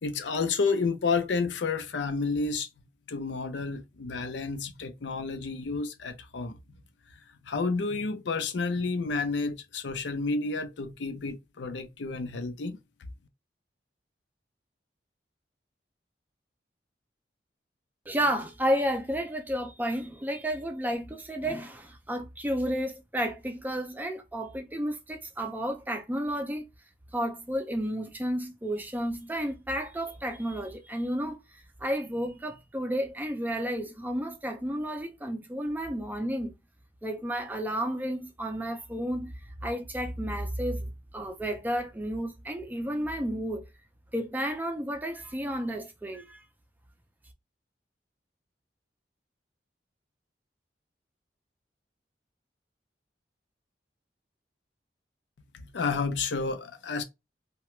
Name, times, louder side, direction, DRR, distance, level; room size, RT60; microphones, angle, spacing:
voice 1, 0.0-2.7 3.1-6.6 7.4-12.8 55.6-57.0, left 4 dB, 85° left, 0.5 m, -30 dB
voice 2, 18.1-26.7 27.1-36.5 37.0-39.3 39.6-43.7 44.1-46.4, equal, 10° right, 0.4 m, -32 dB
2.9 x 2.2 x 3.0 m
head